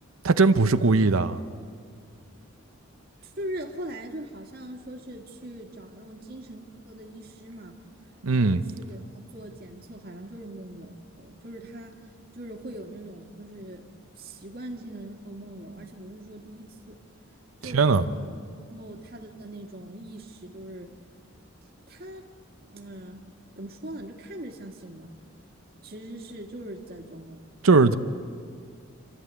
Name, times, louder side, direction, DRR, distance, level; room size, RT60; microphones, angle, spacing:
voice 1, 0.2-1.4 8.2-8.6 17.7-18.0 27.6-28.0, right 3 dB, 80° right, 0.7 m, -19 dB
voice 2, 3.2-7.8 8.3-12.0 12.3-13.9 14.2-17.0 17.6-18.4 18.7-20.9 21.9-22.2 22.7-23.2 23.6-25.1 25.8-27.4, right 1 dB, 45° right, 1.8 m, -41 dB
29.0 x 13.0 x 8.3 m
head